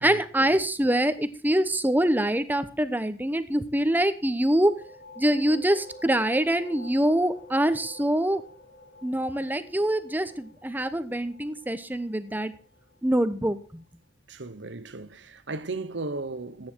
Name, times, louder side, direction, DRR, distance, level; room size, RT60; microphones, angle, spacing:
voice 1, 0.0-4.7 5.2-8.4 9.0-12.5 13.0-13.8, right 1 dB, 10° right, 1.0 m, -24 dB
sound 1, 4.3-13.7, left 2 dB, 80° left, 3.5 m, -49 dB
voice 2, 14.3-16.7, right 3 dB, 80° right, 1.1 m, -35 dB
14.0 x 9.5 x 4.6 m
head